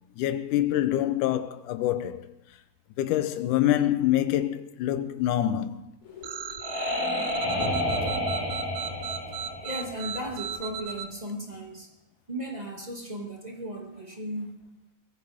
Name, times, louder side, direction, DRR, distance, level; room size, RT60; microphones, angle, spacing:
voice 1, 0.2-2.3 3.0-5.8, left 12 dB, 80° left, 1.9 m, -26 dB
sound 1, 6.1-10.6, left 1 dB, 55° left, 5.8 m, -30 dB
sound 2, 6.2-11.1, right 8 dB, 80° right, 1.7 m, -36 dB
voice 2, 9.6-11.9 12.3-14.6, equal, 15° right, 1.4 m, -36 dB
23.5 x 16.5 x 3.6 m
omnidirectional pair, 4.5 m